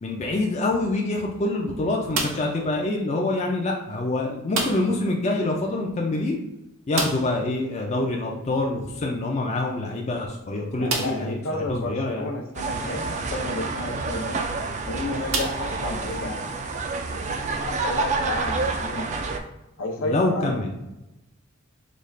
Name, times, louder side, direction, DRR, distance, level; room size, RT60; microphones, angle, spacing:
voice 1, 0.0-6.4 6.9-12.2 20.0-20.7, left 2 dB, 30° left, 0 dB, 0.4 m, -26 dB
sound 1, 2.1-2.7 4.5-5.1 5.3-5.4 5.7-5.8 6.9-7.5 9.2-9.3 9.9-10.0 10.8-11.4 12.1-12.2 14.2-14.4 15.3-16.2, right 3 dB, 70° right, 0.7 m, -29 dB
voice 2, 10.7-14.5 14.9-16.5 17.5-19.2 19.8-20.6, left 2 dB, 70° left, 2 dB, 0.7 m, -32 dB
sound 2, 12.5-19.4, right 3 dB, 35° right, 0.4 m, -28 dB
5.2 x 2.4 x 3.2 m, 0.95 s
head